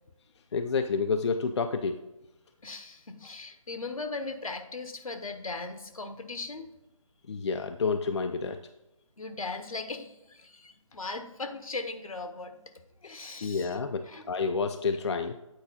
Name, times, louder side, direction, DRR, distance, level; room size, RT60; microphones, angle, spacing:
voice 1, 0.5-2.0 7.3-8.6 13.4-15.4, left 5 dB, 55° left, 7 dB, 0.4 m, -29 dB
voice 2, 2.6-6.7 9.2-12.6 13.0-13.7 14.1-14.2, left 3 dB, 80° left, 8 dB, 1.0 m, -38 dB
8.8 x 4.7 x 4.0 m, 0.94 s
figure-of-eight pair, 155°, 18 cm